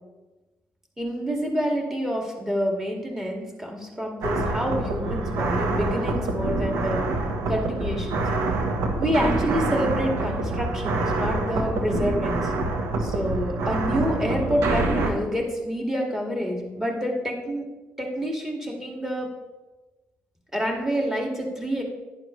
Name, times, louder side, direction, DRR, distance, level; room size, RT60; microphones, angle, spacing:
voice 1, 1.0-7.0 7.5-8.3 9.0-12.5 13.0-17.6 18.0-19.3 20.5-21.8, equal, 10° right, 0 dB, 2.1 m, -27 dB
sound 1, 4.2-15.1, right 2 dB, 85° right, 1.4 m, -26 dB
11.0 x 10.0 x 3.3 m, 1.1 s
cardioid pair, 115°, 5 cm